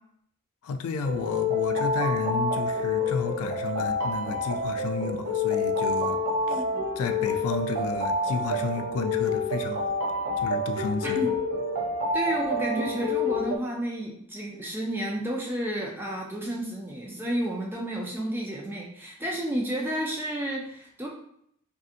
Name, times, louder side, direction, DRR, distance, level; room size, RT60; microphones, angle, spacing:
voice 1, 0.6-6.6 7.0-9.9 10.4-11.3, left 4 dB, 80° left, 7 dB, 0.3 m, -32 dB
sound 1, 1.0-13.6, left 2 dB, 85° right, 0.5 m, -28 dB
voice 2, 6.5-6.9 11.0-11.3 12.1-21.1, right 1 dB, 10° right, -2 dB, 0.3 m, -31 dB
2.6 x 2.6 x 2.4 m, 0.72 s
head